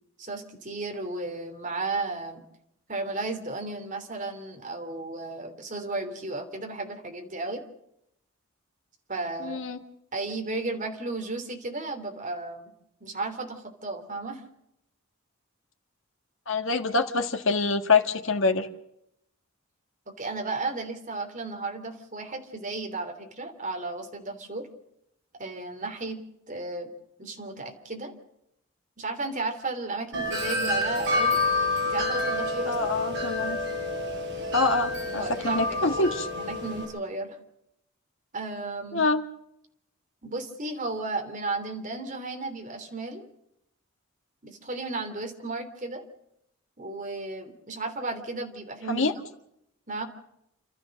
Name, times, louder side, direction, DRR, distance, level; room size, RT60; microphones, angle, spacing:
voice 1, 0.2-2.4 2.9-7.6 9.1-9.6 10.1-12.7 13.0-14.4 20.2-24.7 25.4-26.2 26.5-26.9 27.2-28.1 29.0-31.4 31.8-32.9 35.1-36.0 36.3-37.4 38.3-39.0 40.2-43.2 44.4-46.0 46.8-49.1 49.9-50.0, right 3 dB, 35° right, 4 dB, 3.1 m, -34 dB
voice 2, 9.4-9.8 16.5-18.7 32.7-33.6 34.5-36.3 38.9-39.2 48.9-49.1, left 3 dB, 60° left, 6 dB, 1.7 m, -25 dB
Wind chime, 30.1-36.8, left 2 dB, 55° right, 6.7 m, -28 dB
30.0 x 13.5 x 6.5 m, 0.79 s
head